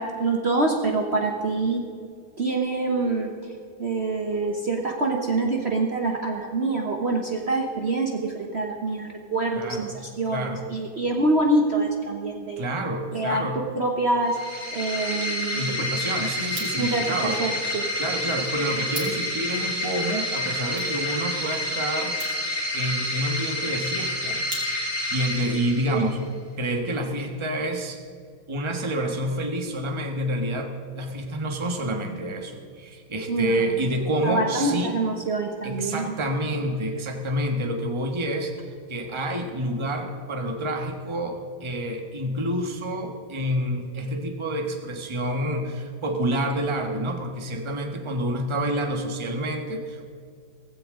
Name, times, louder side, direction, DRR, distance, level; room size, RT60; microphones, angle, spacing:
voice 1, 0.0-1.8 2.4-3.5 3.8-12.7 13.1-14.4 14.7-15.8 16.8-17.9 25.9-26.1 33.3-33.8 34.2-36.1, right 2 dB, 40° right, 1 dB, 1.3 m, -26 dB
voice 2, 9.5-10.0 10.3-10.6 12.6-13.6 15.5-17.4 18.0-22.2 22.7-24.4 25.1-26.2 26.6-28.0 28.5-34.9 35.6-50.1, right 1 dB, 20° right, 3 dB, 1.3 m, -28 dB
sound 1, 14.2-26.2, left 1 dB, 15° left, 5.0 m, -29 dB
sound 2, 16.4-25.1, right 2 dB, 60° right, 3.7 m, -44 dB
17.0 x 16.0 x 3.8 m, 2.2 s
omnidirectional pair, 1.9 m